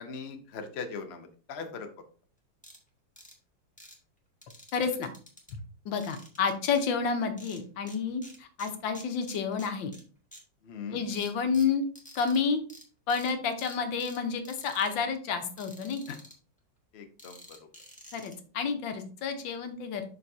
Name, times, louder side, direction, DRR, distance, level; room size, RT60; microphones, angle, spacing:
voice 1, 0.0-1.9 10.6-11.0 16.1-16.2 16.9-17.6, left 5 dB, 45° left, 6 dB, 1.0 m, -40 dB
sound 1, 2.6-2.8 3.2-3.3 3.8-4.0 4.4-5.5 6.0-6.8 7.4-8.0 8.2-10.0 10.3-10.4 11.1-12.4 12.7-12.8 13.1-13.3 13.6-14.2 14.4-14.9 15.6-16.3 17.2-18.3, equal, 5° left, 1.4 m, -50 dB
voice 2, 4.7-5.1 5.5-5.6 5.8-9.9 10.9-11.8 12.1-12.6 13.1-16.0 18.1-20.0, left 5 dB, 85° left, 6 dB, 1.7 m, -30 dB
11.5 x 4.1 x 2.7 m, 0.41 s
omnidirectional pair, 2.0 m